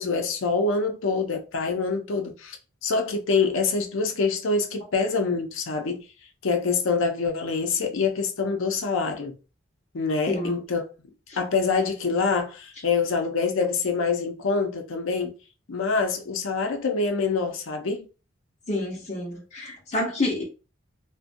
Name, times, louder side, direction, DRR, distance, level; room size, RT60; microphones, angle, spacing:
voice 1, 0.0-2.6 2.8-6.0 6.4-9.3 9.9-10.8 11.4-15.3 15.7-18.1, left 4 dB, 90° left, 0.5 m, -25 dB
voice 2, 18.7-20.4, left 2 dB, 35° left, 0.9 m, -28 dB
2.5 x 2.2 x 2.5 m
head